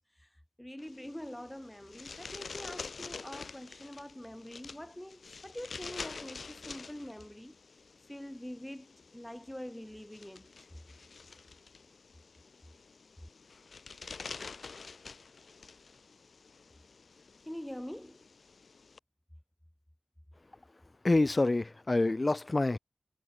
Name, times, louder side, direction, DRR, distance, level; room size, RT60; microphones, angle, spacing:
voice 1, 0.6-7.5 8.1-8.9 9.1-10.5 17.5-18.2, left 1 dB, 10° left, 6.4 m, -44 dB
sound 1, 0.8-19.0, left 4 dB, 80° left, 6.2 m, -48 dB
voice 2, 21.0-22.8, left 2 dB, 35° left, 1.0 m, -27 dB
wide cardioid pair, 65°, 0 cm